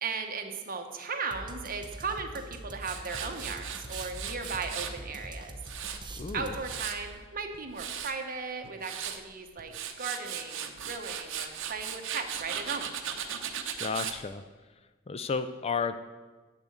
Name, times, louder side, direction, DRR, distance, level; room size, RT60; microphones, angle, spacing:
voice 1, 0.0-5.6 6.3-12.9, right 4 dB, 45° right, 5 dB, 1.1 m, -37 dB
sound 1, 1.3-7.2, right 1 dB, 20° right, 0.7 m, -44 dB
Tools, 2.8-5.0 5.4-7.1 7.5-8.1 8.6-9.2 9.6-14.2, right 8 dB, 60° right, 0.8 m, -37 dB
voice 2, 6.2-6.5 13.8-14.4 15.1-16.0, left 5 dB, 30° left, 10 dB, 0.4 m, -32 dB
8.4 x 7.1 x 8.0 m, 1.3 s
head